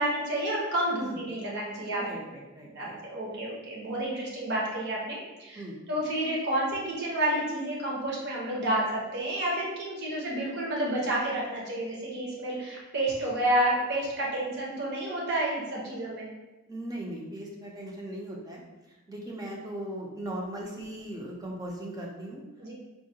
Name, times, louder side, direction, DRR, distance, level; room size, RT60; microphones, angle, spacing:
voice 1, 0.0-2.0 2.7-5.6 5.9-16.3 22.6-22.7, right 1 dB, 50° right, -4 dB, 0.8 m, -30 dB
voice 2, 1.8-3.0 5.5-5.8 16.7-22.4, right 1 dB, 15° right, -2 dB, 0.4 m, -39 dB
4.5 x 2.1 x 2.7 m, 1.1 s
head